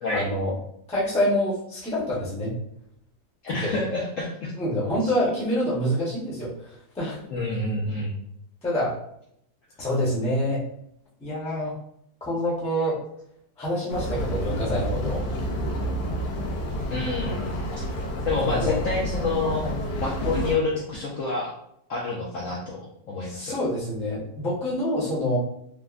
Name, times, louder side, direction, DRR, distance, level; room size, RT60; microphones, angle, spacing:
voice 1, 0.1-0.5 0.9-2.6 3.5-3.8 4.6-7.2 8.6-9.0 9.8-10.6 11.2-11.7 12.2-13.0 13.6-15.3 18.3-18.8 19.6-19.7 23.3-25.4, equal, 5° left, -7 dB, 0.5 m, -26 dB
voice 2, 3.4-4.5 5.1-5.3 7.3-8.2 16.9-17.9 18.2-19.7 20.0-21.5 21.9-23.5, left 3 dB, 65° left, -4 dB, 0.8 m, -28 dB
sound 1, 13.9-20.6, equal, 90° left, 1.2 m, -29 dB
3.4 x 2.1 x 2.4 m, 0.73 s
omnidirectional pair, 1.8 m